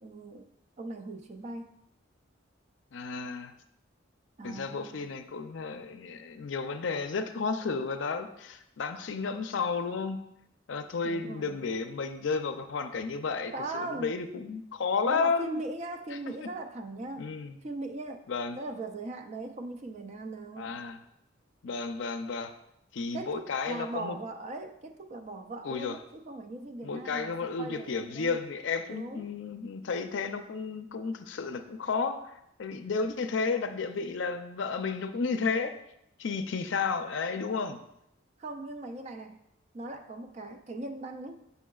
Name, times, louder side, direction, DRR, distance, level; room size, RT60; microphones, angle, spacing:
voice 1, 0.0-1.7 4.4-5.1 11.0-11.7 13.5-14.2 15.0-17.3 17.6-18.3 18.5-20.8 23.1-28.4 28.9-29.3 38.4-39.4 39.7-41.5, right 2 dB, 35° right, 6 dB, 0.4 m, -39 dB
voice 2, 2.9-3.5 4.4-10.2 10.7-15.6 17.2-17.6 18.3-18.6 20.6-21.0 21.6-22.5 22.9-24.2 25.6-26.0 26.8-35.8 36.2-37.8, left 4 dB, 70° left, 8 dB, 0.5 m, -32 dB
7.3 x 5.5 x 2.3 m, 0.79 s
head